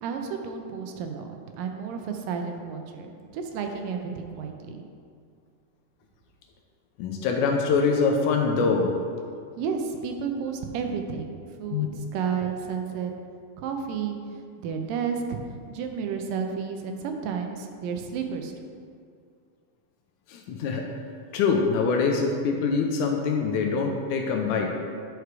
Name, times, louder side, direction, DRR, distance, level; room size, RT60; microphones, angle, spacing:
voice 1, 0.0-4.8 9.6-11.3 11.6-13.1 13.6-15.4 15.7-18.5, right 6 dB, 85° right, 4 dB, 2.4 m, -32 dB
voice 2, 7.0-8.9 11.7-11.9 20.3-20.9 21.3-24.7, left 5 dB, 80° left, 2 dB, 1.9 m, -24 dB
9.8 x 4.9 x 4.7 m, 2.2 s
omnidirectional pair, 3.9 m